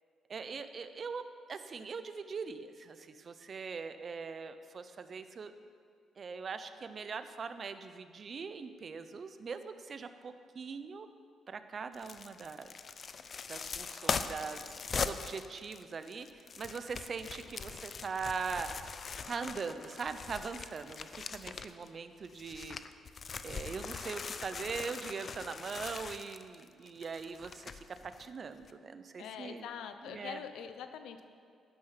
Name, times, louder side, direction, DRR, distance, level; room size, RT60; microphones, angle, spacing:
voice 1, 0.3-1.2 1.5-5.5 6.2-11.1 11.5-12.7 13.5-14.6 14.9-18.7 19.3-22.8 23.4-29.7 30.0-30.4, right 5 dB, 45° right, 10 dB, 0.8 m, -41 dB
sound 1, 11.9-21.9 22.2-28.3 28.6-28.7, left 5 dB, 45° left, 0.6 m, -41 dB
voice 2, 29.2-31.2, left 8 dB, 80° left, 9 dB, 0.9 m, -44 dB
12.0 x 9.7 x 5.8 m, 2.2 s
cardioid pair, 90°, 0 cm